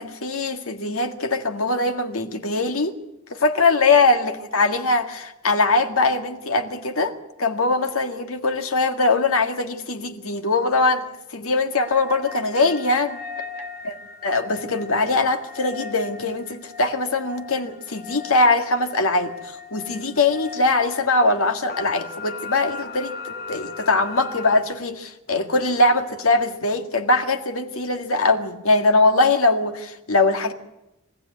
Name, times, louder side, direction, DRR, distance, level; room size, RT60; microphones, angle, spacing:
voice 1, 0.0-3.0 3.3-11.1 11.3-13.2 13.8-13.9 14.2-19.3 19.7-30.5, left 3 dB, 85° left, 6 dB, 1.9 m, -21 dB
sound 1, 11.7-24.6, left 5 dB, 45° left, 2.3 m, -38 dB
23.5 x 15.5 x 9.4 m, 0.93 s
head